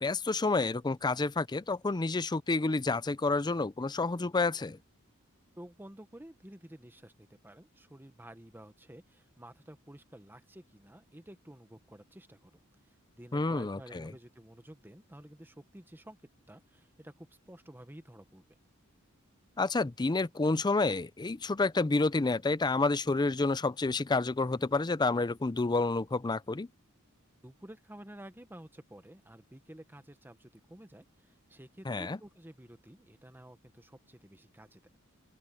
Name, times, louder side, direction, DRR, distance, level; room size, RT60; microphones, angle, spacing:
voice 1, 0.0-4.8 13.3-14.1 19.6-26.7 31.9-32.2, left 3 dB, 20° left, 0.5 m, -29 dB
voice 2, 5.6-16.2 16.5-18.4 27.4-34.8, right 1 dB, 10° right, 1.2 m, -52 dB
open air
head